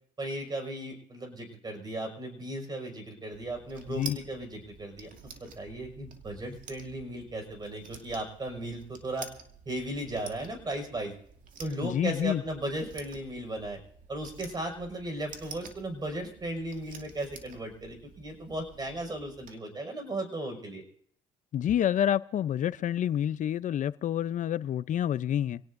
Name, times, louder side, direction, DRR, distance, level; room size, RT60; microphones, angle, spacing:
voice 1, 0.2-9.3 9.7-11.1 11.6-13.8 14.1-20.8, right 1 dB, 25° right, 4 dB, 5.6 m, -36 dB
sound 1, 3.3-19.5, right 5 dB, 50° right, 2.5 m, -49 dB
voice 2, 11.8-12.4 21.5-25.6, left 10 dB, 50° left, 16 dB, 0.6 m, -28 dB
26.5 x 17.5 x 2.6 m, 0.62 s
cardioid pair, 110°, 17 cm